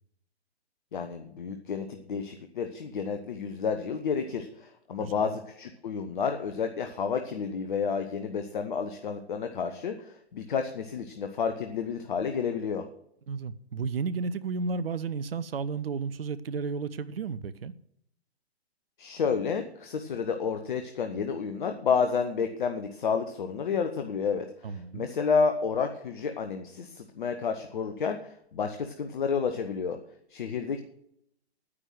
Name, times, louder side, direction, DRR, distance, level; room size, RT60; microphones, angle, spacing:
voice 1, 0.9-12.8 19.0-24.5 24.9-30.0 30.3-30.8, left 6 dB, 50° left, 6 dB, 1.1 m, -30 dB
voice 2, 5.0-5.4 13.3-17.7 24.6-25.1, right 5 dB, 65° right, 14 dB, 0.7 m, -33 dB
9.8 x 9.2 x 6.3 m, 0.73 s
figure-of-eight pair, 125°, 32 cm